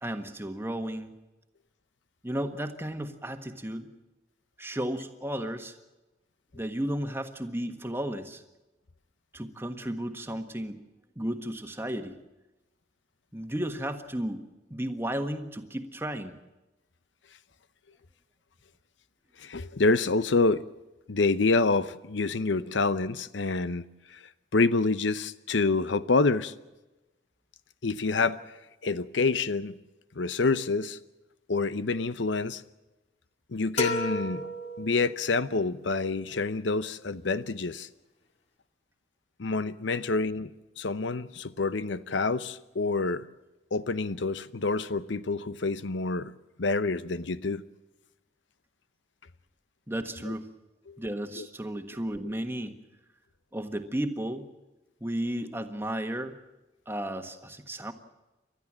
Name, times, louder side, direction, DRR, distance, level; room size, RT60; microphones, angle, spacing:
voice 1, 0.0-1.1 2.2-3.9 4.6-5.7 6.5-8.4 9.3-10.8 11.1-12.2 13.3-14.4 14.7-16.3 49.9-50.5 51.0-52.8 53.5-54.4 55.0-56.3 56.9-57.9, right 1 dB, 15° right, 1.4 m, -33 dB
voice 2, 19.4-20.6 21.1-23.9 24.1-24.2 24.5-26.5 27.8-28.4 28.8-29.7 30.2-31.0 31.5-32.6 33.5-34.4 34.8-37.9 39.4-43.3 43.7-46.3 46.6-47.6 50.3-50.4 50.9-51.0 51.4-51.5, left 3 dB, 90° left, 0.8 m, -27 dB
sound 1, 33.8-35.5, left 1 dB, 35° left, 2.0 m, -32 dB
30.0 x 13.0 x 7.5 m
head